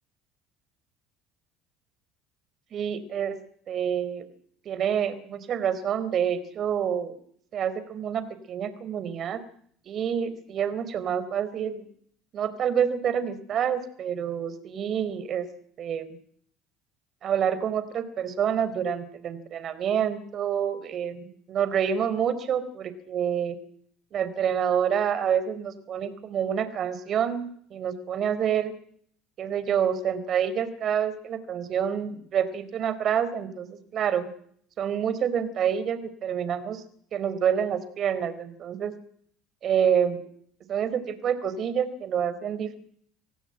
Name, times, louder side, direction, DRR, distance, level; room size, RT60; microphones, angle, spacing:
voice 1, 2.7-3.4 3.7-4.2 4.6-7.1 7.5-9.4 9.9-11.9 12.3-15.5 15.8-16.0 17.2-23.6 24.1-28.7 29.4-34.3 34.8-36.8 37.1-38.9 39.6-40.2 40.7-42.8, right 8 dB, 50° right, 13 dB, 4.2 m, -27 dB
26.0 x 16.5 x 9.1 m, 0.62 s
supercardioid pair, 90°, 0 cm